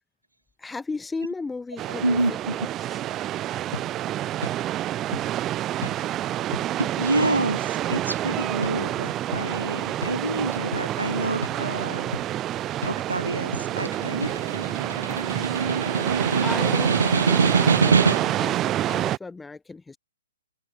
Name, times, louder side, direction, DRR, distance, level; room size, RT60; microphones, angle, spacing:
voice 1, 0.6-3.0 15.1-15.6 16.4-20.0, left 3 dB, 5° left, 5.7 m, -36 dB
sound 1, 1.8-19.2, right 13 dB, 20° right, 0.8 m, -28 dB
voice 2, 2.0-2.5 6.8-12.2 12.9-14.4, right 2 dB, 85° right, 3.4 m, -28 dB
sound 2, 3.7-3.9 4.4-4.6 5.1-5.3 5.8-6.0 6.5-6.7 7.2-7.4 7.9-8.1 8.6-8.8 9.3-9.5 10.0-10.2 10.7-10.9 11.4-11.6 12.1-12.3 12.8-13.0 13.5-13.7 14.2-14.4, left 2 dB, 85° left, 6.3 m, -34 dB
Snare drum, 13.6-18.5, right 5 dB, 65° right, 0.6 m, -23 dB
figure-of-eight pair, 125°, 0 cm